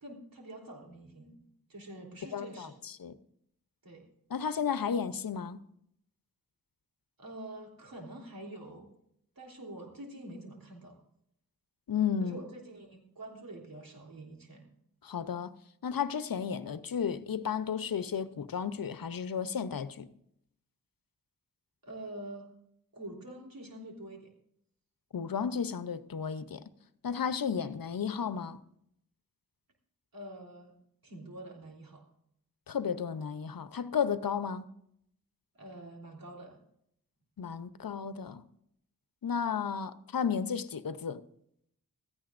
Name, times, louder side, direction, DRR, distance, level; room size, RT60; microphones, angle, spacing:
voice 1, 0.0-1.4 1.7-2.7 3.8-4.1 7.2-8.9 9.4-11.0 12.2-14.7 21.8-22.5 22.9-24.3 30.1-30.8 31.0-32.0 35.5-36.6, right 1 dB, 80° right, 3.5 m, -46 dB
voice 2, 2.3-3.2 4.3-5.6 11.9-12.4 15.0-15.5 15.8-20.1 25.1-26.7 27.0-28.6 32.7-34.7 37.4-38.4 39.2-41.2, left 7 dB, 80° left, 0.8 m, -33 dB
16.5 x 14.0 x 2.6 m
wide cardioid pair, 55°, 34 cm